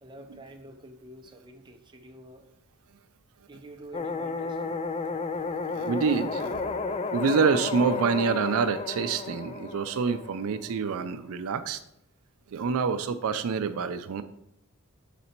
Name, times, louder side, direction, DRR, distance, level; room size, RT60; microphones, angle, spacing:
voice 1, 0.0-2.5 3.5-4.8, right 1 dB, 20° right, 5 dB, 0.6 m, -48 dB
sound 1, 3.9-10.9, left 4 dB, 30° left, 0.3 m, -33 dB
voice 2, 5.7-6.6 7.1-11.8 12.5-14.2, right 5 dB, 70° right, 10 dB, 0.4 m, -27 dB
6.7 x 4.1 x 4.3 m, 0.78 s
head